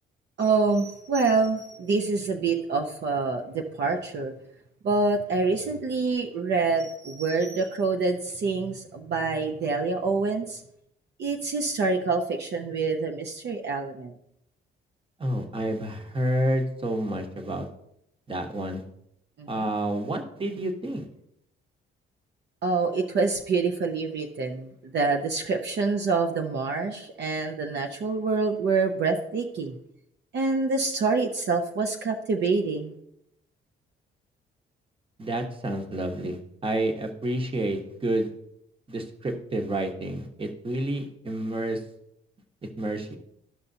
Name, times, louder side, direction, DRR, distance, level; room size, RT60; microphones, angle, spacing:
voice 1, 0.4-4.3 4.8-10.6 11.2-14.1 19.4-19.7 22.6-29.8 30.3-33.0, right 4 dB, 60° right, 3 dB, 0.8 m, -26 dB
voice 2, 15.2-17.7 18.3-18.8 19.5-21.0 35.2-38.3 38.9-41.8 42.6-43.2, right 1 dB, 25° right, 4 dB, 1.2 m, -29 dB
12.5 x 5.6 x 2.7 m, 0.77 s
cardioid pair, 90°, 20 cm